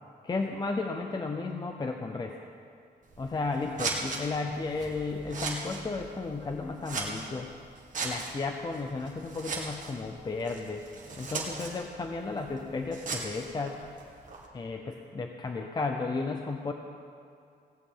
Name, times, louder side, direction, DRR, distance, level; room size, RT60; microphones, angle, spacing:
voice 1, 0.2-2.4 3.2-7.5 8.0-10.9 11.2-13.8 14.5-16.7, left 3 dB, 25° left, 4 dB, 0.6 m, -33 dB
Scissors, 3.0-14.5, right 3 dB, 45° right, 2.0 m, -39 dB
sound 1, 4.1-7.5, right 1 dB, 20° right, 2.2 m, -54 dB
17.0 x 6.7 x 8.9 m, 2.4 s
wide cardioid pair, 175°, 18 cm